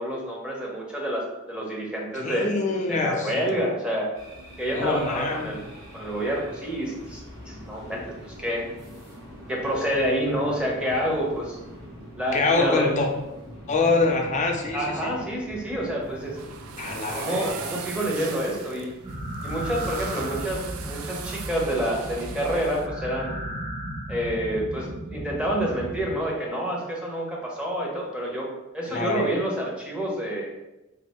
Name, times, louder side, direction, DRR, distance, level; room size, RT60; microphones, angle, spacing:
voice 1, 0.0-2.6 2.9-4.1 4.6-5.6 5.9-7.2 7.5-8.7 9.5-11.6 12.2-12.9 14.7-16.4 17.1-18.9 19.4-23.4 24.1-28.5 28.7-30.5, equal, 5° right, -3 dB, 0.7 m, -28 dB
voice 2, 2.1-3.6 4.7-5.5 12.3-13.1 13.7-15.1 16.8-17.5 28.9-29.3, left 3 dB, 35° left, 2 dB, 0.5 m, -25 dB
sound 1, 4.1-20.4, equal, 65° right, 1.5 m, -44 dB
sound 2, 16.0-22.9, right 6 dB, 85° right, 0.4 m, -39 dB
sound 3, 19.0-26.2, equal, 30° right, 0.9 m, -35 dB
2.7 x 2.5 x 4.2 m, 0.98 s
head